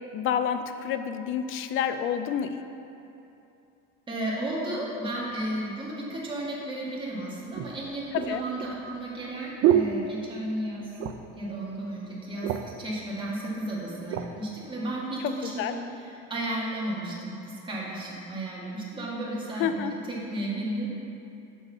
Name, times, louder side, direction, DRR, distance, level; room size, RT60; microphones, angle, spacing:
voice 1, 0.1-2.6 8.1-8.4 15.2-15.8 19.6-19.9, left 8 dB, 40° left, 9 dB, 0.4 m, -29 dB
voice 2, 4.1-10.9 11.3-20.9, right 1 dB, 15° right, -6 dB, 1.6 m, -33 dB
sound 1, 6.6-6.7 7.5-10.7 10.9-11.4 11.8-11.9 12.2-12.9 13.6-14.3 14.9-15.1, right 11 dB, 45° right, 0.4 m, -29 dB
7.4 x 4.0 x 6.1 m, 2.7 s
cardioid pair, 135°, 31 cm